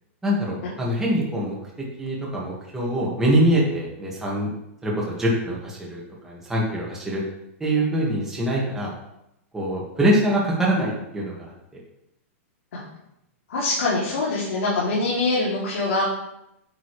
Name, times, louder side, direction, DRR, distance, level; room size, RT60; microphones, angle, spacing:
voice 1, 0.2-1.6 2.0-4.5 4.8-7.2 7.6-8.9 9.5-11.5, right 1 dB, 5° right, -5 dB, 2.0 m, -24 dB
voice 2, 13.5-16.1, left 2 dB, 75° left, -7 dB, 3.1 m, -24 dB
9.1 x 7.0 x 3.4 m, 0.83 s
hypercardioid pair, 155°, 8 cm